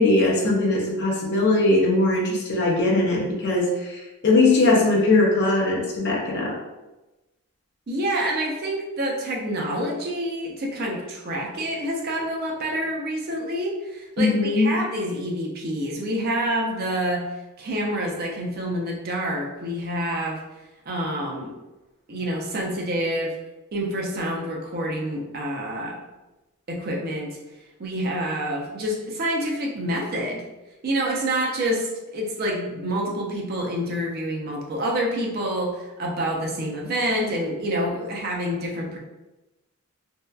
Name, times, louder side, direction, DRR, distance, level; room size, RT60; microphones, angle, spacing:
voice 1, 0.0-6.6 14.2-14.8, left 2 dB, 50° left, -3 dB, 0.5 m, -20 dB
voice 2, 7.9-17.2 17.6-20.4 20.9-21.5 22.1-23.3 23.7-26.0 26.7-27.4 27.8-30.4 30.8-39.0, right 1 dB, 45° right, -1 dB, 0.4 m, -27 dB
2.6 x 2.1 x 2.3 m, 1.0 s
head